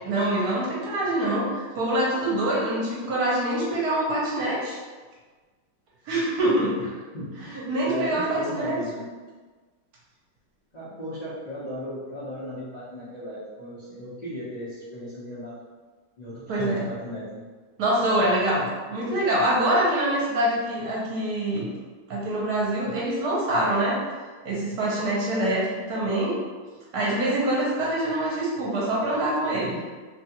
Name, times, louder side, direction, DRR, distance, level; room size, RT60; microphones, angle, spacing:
voice 1, 0.0-4.8 6.1-6.7 7.4-8.8 16.5-16.9 17.8-21.7 22.1-24.0 24.4-26.3 26.9-29.8, right 1 dB, 65° right, -5 dB, 1.1 m, -25 dB
voice 2, 7.9-9.1 10.7-15.6 16.2-17.4, equal, 80° left, -12 dB, 0.3 m, -36 dB
3.0 x 2.4 x 2.8 m, 1.4 s
omnidirectional pair, 2.0 m